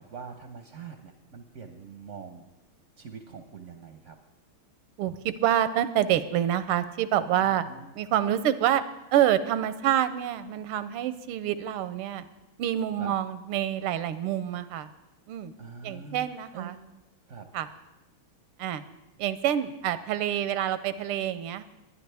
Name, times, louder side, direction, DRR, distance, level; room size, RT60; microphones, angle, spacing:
voice 1, 0.0-2.5 3.0-4.2 7.4-7.9 13.0-13.1 15.6-16.2 16.5-16.8 17.3-17.5, right 5 dB, 60° right, 5 dB, 0.8 m, -43 dB
voice 2, 5.0-7.7 7.9-8.8 9.1-12.2 12.6-14.9 15.3-15.5 15.8-16.7 17.5-17.7 18.6-18.9 19.2-21.6, right 11 dB, 85° right, 13 dB, 1.5 m, -27 dB
21.0 x 10.0 x 3.4 m, 0.99 s
omnidirectional pair, 2.4 m